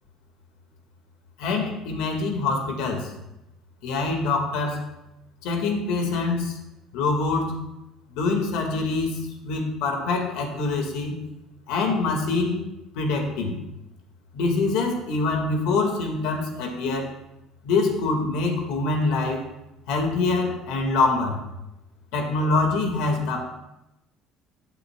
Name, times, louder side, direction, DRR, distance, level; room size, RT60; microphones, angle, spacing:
voice 1, 1.4-3.1 3.8-4.8 5.4-6.6 6.9-7.6 8.1-11.2 11.7-12.7 12.9-13.6 14.3-17.1 17.6-19.4 19.9-21.4 22.1-23.5, left 3 dB, 80° left, 3 dB, 2.0 m, -25 dB
16.0 x 8.3 x 2.4 m, 0.90 s
cardioid pair, 160°, 0 cm